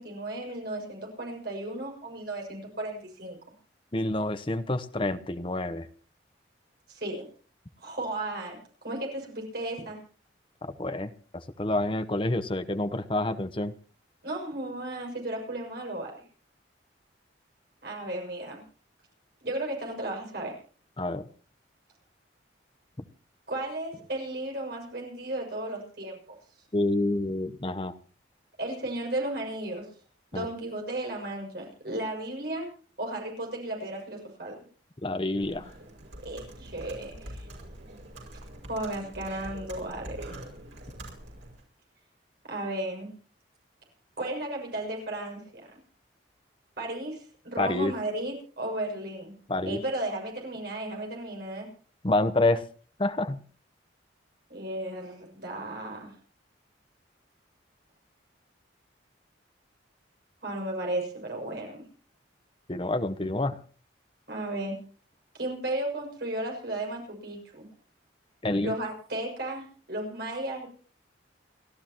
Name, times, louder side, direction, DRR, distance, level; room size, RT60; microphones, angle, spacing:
voice 1, 0.0-3.4 6.9-7.3 7.8-10.0 14.2-16.1 17.8-18.6 19.4-20.5 23.5-26.2 28.6-29.9 30.3-32.7 33.0-34.6 36.2-37.5 38.7-40.2 42.5-43.1 44.2-45.8 46.8-49.3 49.7-51.7 54.5-56.1 60.4-61.8 64.3-64.8 65.3-67.7 68.6-70.7, right 1 dB, 55° right, 0 dB, 6.9 m, -34 dB
voice 2, 3.9-5.9 10.6-11.1 11.6-13.7 21.0-21.2 26.7-27.9 30.3-30.5 35.0-35.7 47.6-47.9 49.5-49.8 52.0-52.6 53.0-53.4 62.7-63.6 68.4-68.8, left 2 dB, 25° left, 10 dB, 0.8 m, -28 dB
Computer keyboard, 35.4-41.6, right 1 dB, 85° right, 5.8 m, -44 dB
29.5 x 12.5 x 3.0 m, 0.41 s
head